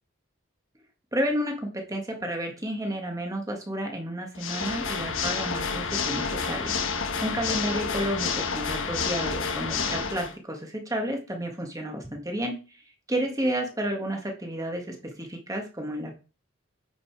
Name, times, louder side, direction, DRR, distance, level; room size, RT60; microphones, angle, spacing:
voice 1, 1.1-6.7 7.2-12.8 13.1-16.2, right 1 dB, 15° right, 2 dB, 1.7 m, -31 dB
Water / Mechanisms, 4.3-10.3, left 5 dB, 90° left, 1.2 m, -29 dB
9.5 x 5.4 x 4.7 m, 0.34 s
head